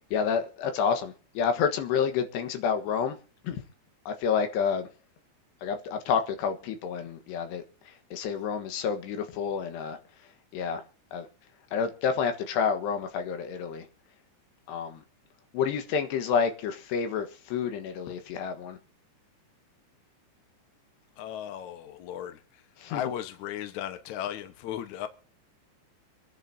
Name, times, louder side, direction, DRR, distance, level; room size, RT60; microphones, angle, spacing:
voice 1, 0.1-3.2 3.4-3.6 4.1-4.9 5.6-10.0 10.5-10.8 11.1-11.3 11.7-13.9 14.7-15.0 15.5-18.8 22.8-23.0, left 6 dB, 70° left, 3.4 m, -29 dB
voice 2, 21.2-22.4 22.9-25.1, left 10 dB, 90° left, 1.6 m, -36 dB
26.0 x 10.5 x 2.8 m
omnidirectional pair, 5.4 m